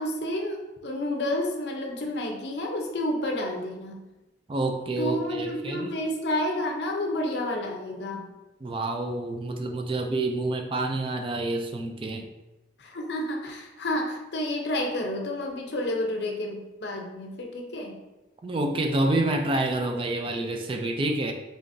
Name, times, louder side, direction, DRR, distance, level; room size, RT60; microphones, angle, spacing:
voice 1, 0.0-4.0 5.0-8.3 12.8-18.0, left 1 dB, 60° left, 2 dB, 0.6 m, -30 dB
voice 2, 4.5-5.9 8.6-12.3 18.4-21.3, right 2 dB, 30° right, 4 dB, 0.3 m, -28 dB
3.7 x 3.5 x 2.6 m, 1.1 s
head